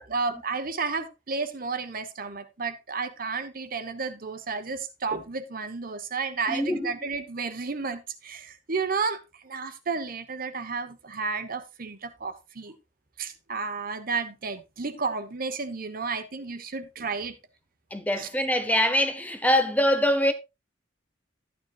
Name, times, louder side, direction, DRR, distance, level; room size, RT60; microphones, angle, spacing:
voice 1, 0.0-12.8 13.2-17.4 18.2-18.3, right 4 dB, 50° right, 1.1 m, -32 dB
voice 2, 6.5-6.9 17.9-20.3, equal, 10° left, 0.9 m, -24 dB
12.0 x 9.4 x 2.4 m
head